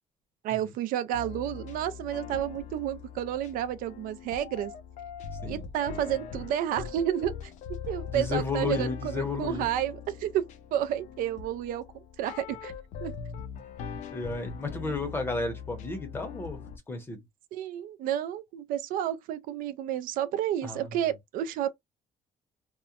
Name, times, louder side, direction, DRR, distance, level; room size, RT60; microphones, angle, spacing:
voice 1, 0.4-4.7 5.5-7.3 7.9-11.8 12.2-12.7 13.0-13.1 17.5-21.7, right 11 dB, 85° right, 0.4 m, -31 dB
sound 1, 1.1-16.8, left 7 dB, 60° left, 0.4 m, -41 dB
voice 2, 8.1-9.7 14.1-16.6 16.9-17.2 20.6-20.9, left 3 dB, 15° left, 0.6 m, -32 dB
2.8 x 2.0 x 2.3 m
cardioid pair, 170°, 14 cm